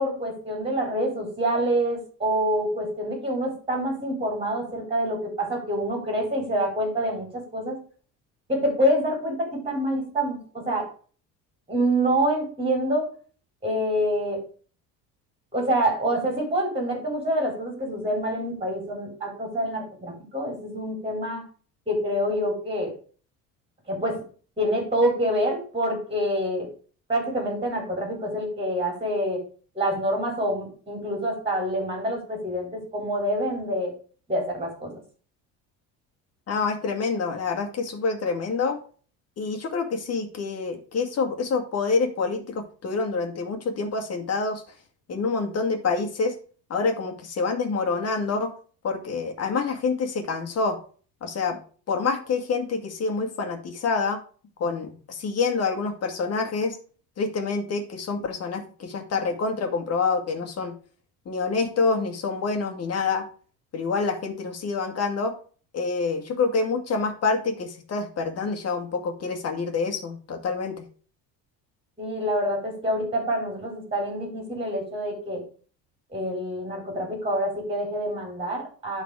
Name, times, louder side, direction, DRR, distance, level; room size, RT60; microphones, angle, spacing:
voice 1, 0.0-7.8 8.5-10.9 11.7-13.1 13.6-14.4 15.5-21.4 21.9-22.9 23.9-24.2 24.6-26.7 27.1-29.4 29.7-33.9 34.3-34.9 72.0-75.4 76.1-79.0, equal, 15° right, 1 dB, 4.2 m, -26 dB
voice 2, 36.5-38.8 39.4-44.6 45.1-46.4 46.7-48.5 48.8-50.8 51.2-51.6 51.9-54.2 54.6-56.8 57.2-60.7 61.3-63.3 63.7-65.3 65.7-70.8, left 4 dB, 45° left, 5 dB, 2.0 m, -27 dB
11.5 x 4.1 x 5.0 m, 0.41 s
cardioid pair, 105°, 35 cm